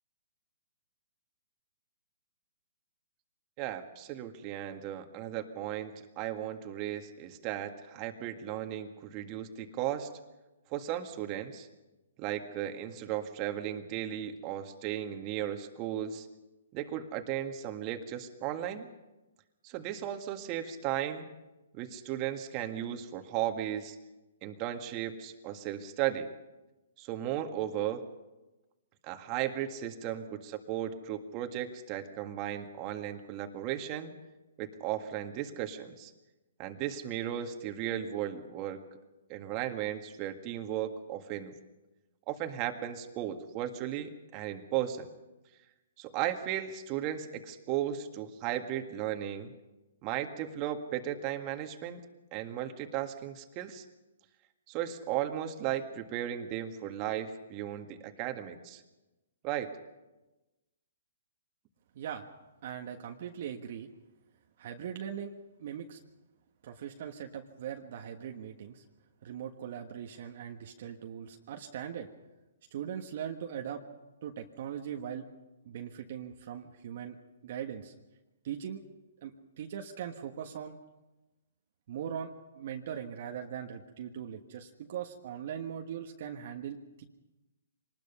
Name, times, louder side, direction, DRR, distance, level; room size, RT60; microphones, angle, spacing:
voice 1, 3.6-10.1 10.7-11.7 12.2-16.3 16.7-18.9 19.6-21.3 21.7-24.0 24.4-26.3 27.0-28.0 29.0-34.1 34.6-36.1 36.6-38.8 39.3-41.5 42.3-45.1 46.0-49.5 50.0-52.0 52.3-53.8 54.7-58.8 59.4-59.7, right 11 dB, 30° right, 5 dB, 1.9 m, -35 dB
voice 2, 61.9-62.3 62.6-63.9 64.6-65.3 65.6-66.0 66.6-68.8 69.2-72.1 72.7-73.8 74.2-75.3 75.6-77.2 77.4-77.9 78.4-78.8 79.2-80.8 81.9-82.3 82.5-87.0, right 9 dB, 55° right, 3 dB, 1.5 m, -40 dB
24.5 x 20.0 x 5.6 m, 1.1 s
hypercardioid pair, 135°, 0 cm